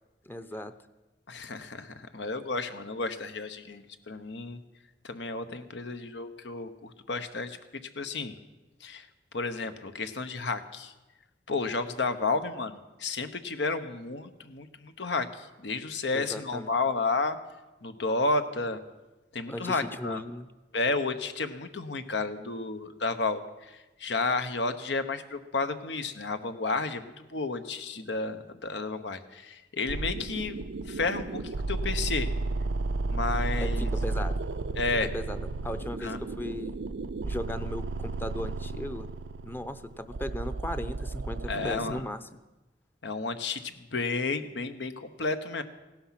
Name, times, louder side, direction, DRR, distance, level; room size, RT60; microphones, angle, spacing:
voice 1, 0.3-0.7 16.1-16.7 19.5-20.5 33.6-34.3 35.0-36.8 37.2-39.1 39.4-42.2, left 1 dB, 10° left, 9 dB, 0.6 m, -37 dB
voice 2, 1.3-4.6 5.0-7.6 8.0-8.3 8.8-9.1 9.3-10.9 11.5-17.4 17.8-18.8 19.3-20.2 20.7-30.6 30.9-32.3 33.1-33.9 34.8-35.1 36.0-36.2 41.5-42.0 43.0-45.6, left 3 dB, 85° left, 9 dB, 1.1 m, -32 dB
sound 1, 29.9-42.0, right 3 dB, 85° right, 0.6 m, -33 dB
16.5 x 12.0 x 5.9 m, 1.1 s
head